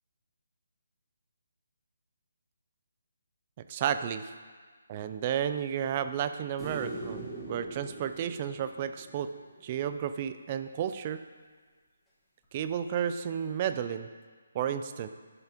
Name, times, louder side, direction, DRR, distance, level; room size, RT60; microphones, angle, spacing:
voice 1, 3.7-4.3 4.9-9.3 9.6-11.2 12.5-14.1 14.5-15.1, right 9 dB, 25° right, 10 dB, 0.3 m, -32 dB
sound 1, 6.6-9.9 12.4-12.5, right 2 dB, 5° left, 1.4 m, -42 dB
12.0 x 6.8 x 2.9 m, 1.5 s
hypercardioid pair, 170°, 0 cm